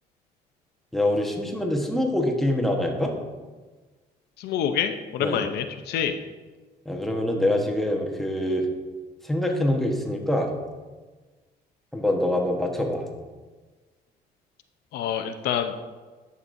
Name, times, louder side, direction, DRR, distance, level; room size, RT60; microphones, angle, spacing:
voice 1, 0.9-3.1 5.2-5.4 6.9-8.7 9.3-10.5 11.9-13.0, left 1 dB, ahead, 0 dB, 1.2 m, -25 dB
voice 2, 4.4-6.1 14.9-15.7, left 9 dB, 75° left, 7 dB, 0.6 m, -27 dB
11.0 x 6.7 x 2.6 m, 1.3 s
cardioid pair, 110°, 17 cm